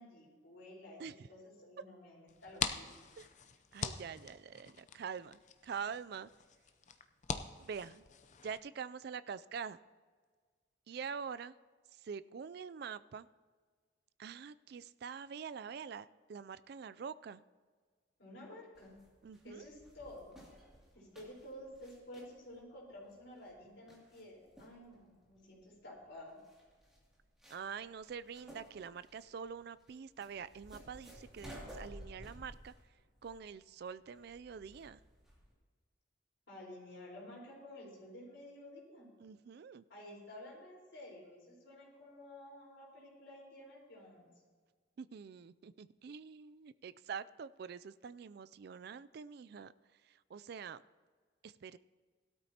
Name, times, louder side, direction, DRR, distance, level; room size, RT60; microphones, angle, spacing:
voice 1, 0.0-1.0 1.3-3.0 18.2-18.9 19.4-20.4 20.9-26.4 36.5-39.1 39.9-44.3, left 1 dB, 65° left, -4 dB, 4.2 m, -52 dB
sound 1, 2.3-8.6, left 6 dB, 40° left, 0.5 m, -43 dB
voice 2, 3.7-6.3 7.6-8.0 8.4-9.8 10.9-11.5 11.9-13.3 14.2-17.4 19.2-19.7 27.5-32.7 33.2-35.0 39.2-39.8 45.0-49.7 50.0-50.8 51.4-51.8, right 6 dB, 55° right, 16 dB, 0.3 m, -45 dB
sound 2, 18.7-35.5, equal, 5° right, 2.5 m, -56 dB
17.5 x 12.5 x 2.9 m, 1.6 s
head